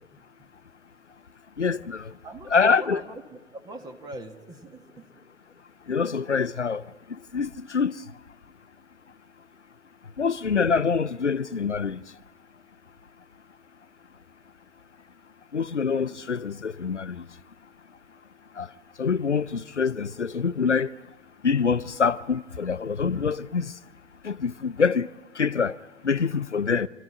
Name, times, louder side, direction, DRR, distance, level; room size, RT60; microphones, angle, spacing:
voice 1, 0.1-0.5 2.0-5.2, right 3 dB, 10° right, 1.5 m, -42 dB
voice 2, 1.6-2.1 2.5-3.0 5.9-6.8 7.3-8.0 10.2-12.0 15.5-17.2 18.6-18.7 19.0-20.9 21.4-23.7 24.2-25.1 25.4-25.8 26.0-26.9, left 5 dB, 90° left, 0.7 m, -25 dB
26.0 x 14.5 x 9.8 m
figure-of-eight pair, 115°, 34 cm